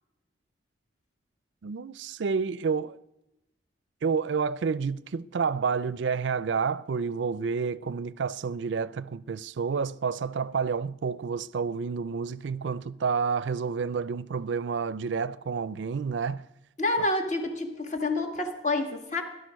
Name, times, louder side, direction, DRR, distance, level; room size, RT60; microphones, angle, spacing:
voice 1, 1.6-3.0 4.0-16.5, right 5 dB, 70° right, 0.4 m, -29 dB
voice 2, 16.8-19.2, left 2 dB, 40° left, 1.8 m, -28 dB
17.0 x 11.0 x 6.3 m
head